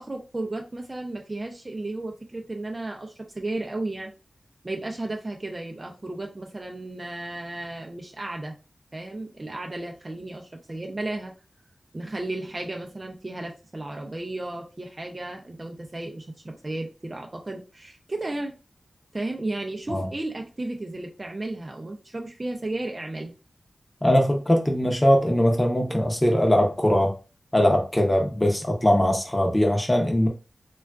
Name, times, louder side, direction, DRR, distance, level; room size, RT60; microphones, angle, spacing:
voice 1, 0.0-4.1 4.6-8.5 8.9-11.3 11.9-18.6 19.1-23.3, right 2 dB, 30° right, 2 dB, 0.4 m, -34 dB
voice 2, 24.0-27.1 27.5-30.3, equal, 15° left, 1 dB, 0.7 m, -21 dB
3.4 x 2.3 x 2.3 m, 0.32 s
wide cardioid pair, 100°, 0 cm